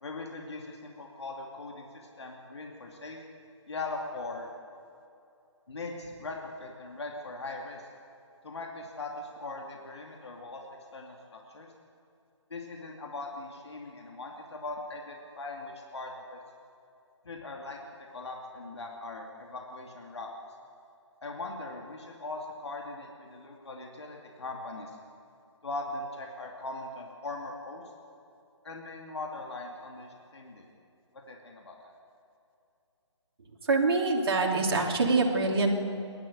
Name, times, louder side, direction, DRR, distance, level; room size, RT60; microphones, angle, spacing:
voice 1, 0.0-3.2 3.7-4.5 5.7-7.9 8.4-10.6 10.9-11.7 12.5-16.4 17.2-17.8 18.1-20.3 21.2-24.9 25.6-27.8 28.6-30.7 31.3-31.9, left 2 dB, 60° left, 1 dB, 2.5 m, -40 dB
voice 2, 33.7-35.8, right 3 dB, 50° right, 0 dB, 2.9 m, -25 dB
28.0 x 11.5 x 8.1 m, 2.7 s
figure-of-eight pair, 140°, 16 cm